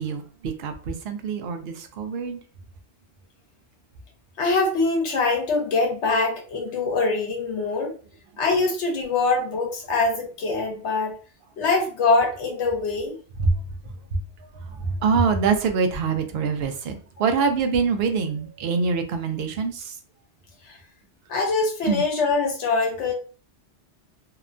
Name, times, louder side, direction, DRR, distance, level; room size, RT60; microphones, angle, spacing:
voice 1, 0.0-2.4 13.4-13.6 14.1-19.9 21.8-22.0, right 5 dB, 65° right, 6 dB, 0.7 m, -25 dB
voice 2, 4.4-7.9 8.4-11.1 11.6-13.2 20.6-20.8 21.3-23.1, left 3 dB, 80° left, 1 dB, 1.1 m, -23 dB
2.8 x 2.1 x 2.5 m, 0.38 s
omnidirectional pair, 1.2 m